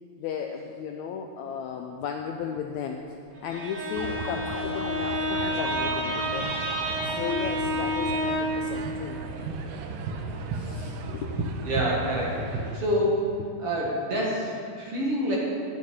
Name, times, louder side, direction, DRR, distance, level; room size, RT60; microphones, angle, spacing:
voice 1, 0.2-3.0 3.4-9.3 10.5-11.7 12.7-12.8, left 7 dB, 90° left, 3 dB, 1.6 m, -35 dB
Bowed string instrument, 3.3-8.7, left 1 dB, 70° right, 4.4 m, -29 dB
sound 1, 4.0-12.8, right 4 dB, 85° right, 2.5 m, -35 dB
voice 2, 11.6-13.3 13.6-15.4, equal, 45° right, -4 dB, 2.6 m, -27 dB
12.0 x 11.0 x 5.4 m, 2.3 s
omnidirectional pair, 4.0 m